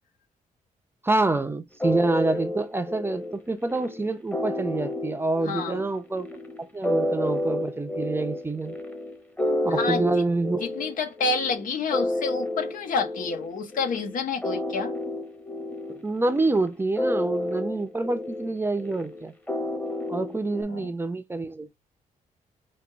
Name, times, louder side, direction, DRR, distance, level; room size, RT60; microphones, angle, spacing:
voice 1, 1.0-6.3 6.6-8.8 9.6-10.7 16.0-19.3 20.1-21.7, right 2 dB, 15° right, 0.6 m, -27 dB
sound 1, 1.8-20.6, left 1 dB, 10° left, 1.1 m, -31 dB
voice 2, 5.4-5.8 9.7-10.0 10.6-14.9 20.7-20.9, left 4 dB, 70° left, 1.5 m, -29 dB
5.1 x 2.5 x 3.5 m
cardioid pair, 115°, 14 cm